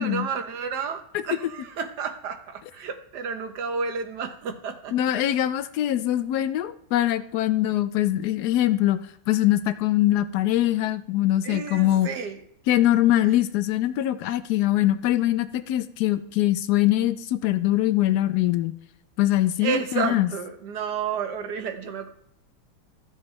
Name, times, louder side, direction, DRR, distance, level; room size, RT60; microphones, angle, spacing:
voice 1, 0.0-4.9 11.4-12.4 13.2-13.4 19.6-22.1, right 6 dB, 60° right, 7 dB, 1.3 m, -31 dB
voice 2, 4.9-9.0 9.3-12.1 12.7-18.7 19.2-20.3, left 14 dB, 80° left, 12 dB, 0.9 m, -23 dB
14.5 x 7.0 x 3.2 m, 0.72 s
omnidirectional pair, 2.2 m